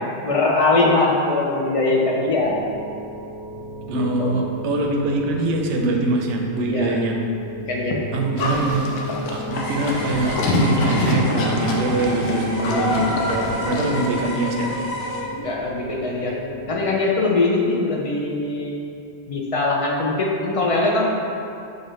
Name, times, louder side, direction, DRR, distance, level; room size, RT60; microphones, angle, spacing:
voice 1, 0.2-2.5 3.9-4.4 6.7-6.9 7.7-8.0 15.4-16.4 16.7-18.7 19.3-21.1, left 2 dB, 45° left, -2 dB, 0.4 m, -21 dB
sound 1, 2.2-16.9, right 1 dB, 25° right, 0.6 m, -35 dB
voice 2, 3.9-7.2 8.1-8.9 9.3-14.7, right 2 dB, 80° right, 1 dB, 0.9 m, -23 dB
Livestock farm animals working animals, 8.4-14.1, left 1 dB, 70° left, 0.8 m, -25 dB
sound 2, 9.5-15.2, equal, 90° left, 1.2 m, -31 dB
6.4 x 2.4 x 3.1 m, 2.6 s
omnidirectional pair, 1.2 m